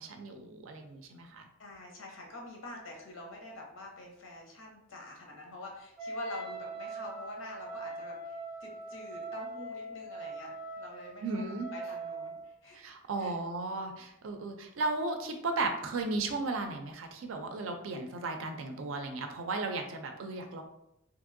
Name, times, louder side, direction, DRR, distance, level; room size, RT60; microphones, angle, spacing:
voice 1, 0.0-1.5 11.2-11.7 12.7-20.6, right 3 dB, 85° right, 5 dB, 0.5 m, -35 dB
voice 2, 1.6-11.4 11.7-12.8 13.2-13.3, left 2 dB, 90° left, 0 dB, 0.8 m, -46 dB
Wind instrument woodwind instrument, 6.0-12.6, right 2 dB, 5° right, 1.0 m, -41 dB
2.9 x 2.6 x 2.5 m, 0.81 s
head